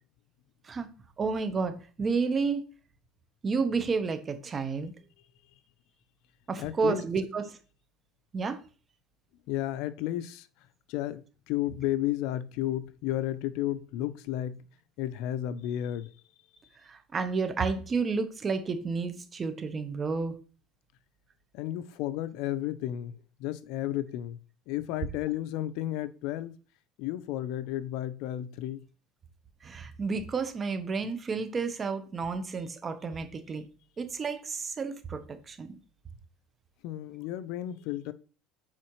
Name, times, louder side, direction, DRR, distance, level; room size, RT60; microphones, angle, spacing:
voice 1, 1.2-2.6 3.4-4.9 6.5-7.6 8.3-8.6 16.9-20.3 29.6-33.6 34.0-35.7, right 4 dB, 25° right, 0.9 m, -31 dB
voice 2, 6.6-7.0 9.5-10.5 10.9-14.6 15.0-16.1 21.5-24.4 24.7-26.6 27.0-28.9 36.8-38.1, left 13 dB, 70° left, 0.5 m, -33 dB
7.4 x 4.8 x 3.1 m
supercardioid pair, 125°, 0 cm